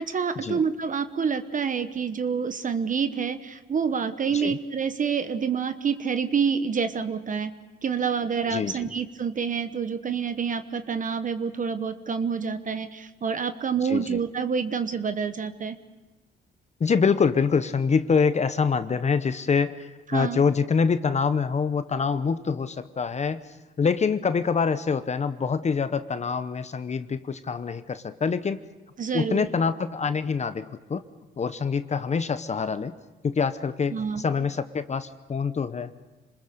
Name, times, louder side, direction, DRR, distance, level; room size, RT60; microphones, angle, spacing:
voice 1, 0.0-7.5 7.8-15.8 20.1-20.4 29.0-29.5 33.9-34.2, right 6 dB, 40° right, 10 dB, 1.1 m, -27 dB
voice 2, 8.5-8.9 13.8-14.2 16.8-23.4 23.8-28.7 29.1-31.0 31.4-32.9 33.2-36.0, left 5 dB, 35° left, 12 dB, 0.9 m, -25 dB
27.5 x 20.5 x 6.6 m, 1.2 s
cardioid pair, 90°, 20 cm